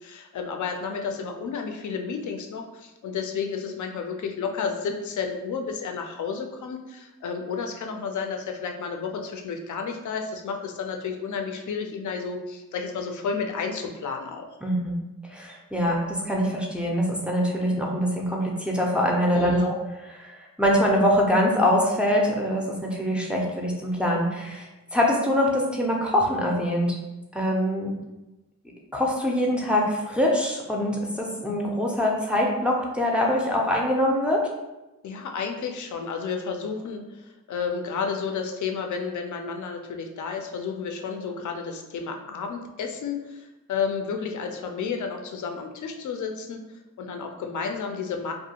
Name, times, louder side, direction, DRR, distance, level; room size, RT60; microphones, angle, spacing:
voice 1, 0.0-14.5 19.3-19.7 35.0-46.6 47.0-48.3, left 5 dB, 60° left, 4 dB, 0.5 m, -31 dB
voice 2, 14.6-15.0 15.3-19.8 20.0-26.9 27.3-27.9 28.9-34.4, equal, 5° right, -2 dB, 0.4 m, -24 dB
2.4 x 2.2 x 2.8 m, 1.0 s
cardioid pair, 75°, 34 cm